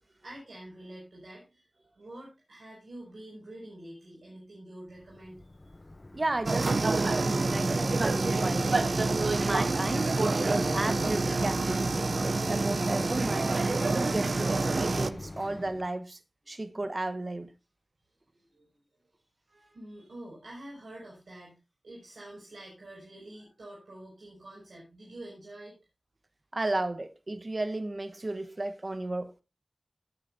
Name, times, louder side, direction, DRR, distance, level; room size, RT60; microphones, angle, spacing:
voice 1, 0.0-5.5 18.3-18.8 19.1-21.6 21.8-25.8, right 1 dB, 85° right, 5.7 m, -47 dB
Mechanisms, 4.9-15.9, left 2 dB, 35° left, 0.7 m, -42 dB
voice 2, 6.1-8.7 9.3-13.5 13.9-16.2 16.5-17.5 26.5-29.4, right 2 dB, 45° right, 1.1 m, -34 dB
sound 1, 6.5-15.1, right 3 dB, 70° right, 0.6 m, -27 dB
17.5 x 9.1 x 2.7 m
cardioid pair, 45°, 0 cm